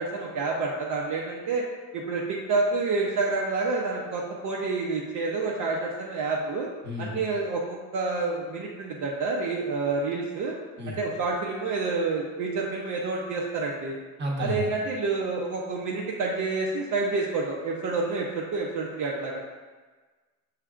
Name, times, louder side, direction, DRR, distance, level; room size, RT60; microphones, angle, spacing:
voice 1, 0.0-1.7 1.9-6.7 7.0-10.5 10.9-14.0 14.4-19.4, right 3 dB, 55° right, -2 dB, 0.6 m, -28 dB
voice 2, 6.8-7.2 10.8-11.0 14.2-14.7, left 1 dB, 30° right, -1 dB, 0.9 m, -31 dB
5.8 x 3.3 x 2.4 m, 1.4 s
cardioid pair, 110°, 37 cm